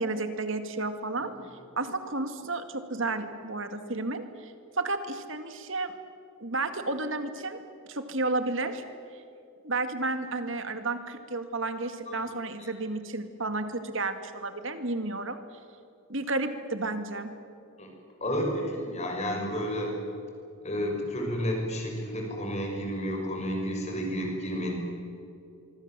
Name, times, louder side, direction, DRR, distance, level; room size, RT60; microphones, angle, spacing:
voice 1, 0.0-5.9 6.4-7.6 7.9-8.8 9.6-15.4 16.1-17.3, right 2 dB, 60° right, 8 dB, 2.2 m, -32 dB
voice 2, 18.2-19.9 20.6-24.8, equal, 30° left, 1 dB, 6.1 m, -31 dB
25.5 x 24.5 x 7.6 m, 2.6 s
head